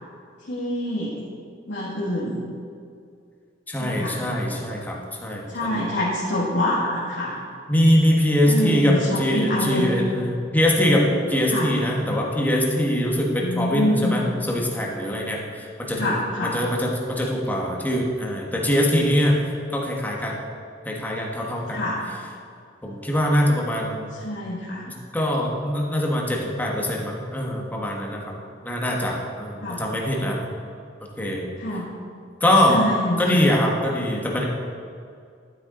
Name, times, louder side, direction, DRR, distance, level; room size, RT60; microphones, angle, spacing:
voice 1, 0.5-1.1 1.6-2.4 3.8-4.2 5.5-7.4 8.4-9.9 11.5-11.7 13.4-14.1 16.0-16.6 21.7-22.0 24.2-24.8 29.6-29.8 31.6-31.9 32.7-33.4, left 1 dB, 65° left, -8 dB, 2.0 m, -26 dB
voice 2, 3.7-5.8 7.7-16.2 16.4-19.4 19.7-20.3 20.8-21.8 22.8-24.1 24.9-28.3 28.6-30.4 31.2-31.4 32.4-32.8 33.2-34.4, equal, 10° left, -2 dB, 1.4 m, -23 dB
12.5 x 8.2 x 3.9 m, 2.3 s
head